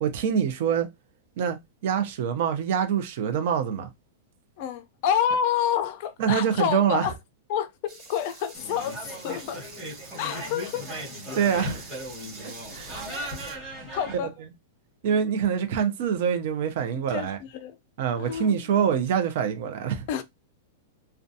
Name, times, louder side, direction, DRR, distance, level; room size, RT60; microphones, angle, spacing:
voice 1, 0.0-0.9 1.4-1.6 1.8-3.9 6.2-7.1 11.3-11.9 12.4-13.0 15.0-17.4 18.0-20.1, right 8 dB, 50° right, 0.5 m, -25 dB
voice 2, 4.6-7.1 7.5-9.7 10.2-10.9 11.5-11.6 13.9-14.3 16.9-17.8 18.2-18.6 20.1-20.2, left 9 dB, 40° left, 0.4 m, -28 dB
sound 1, 7.9-13.6, right 3 dB, 25° right, 0.9 m, -45 dB
sound 2, 8.5-14.2, equal, ahead, 1.2 m, -37 dB
2.4 x 2.2 x 2.6 m
supercardioid pair, 170°, 0 cm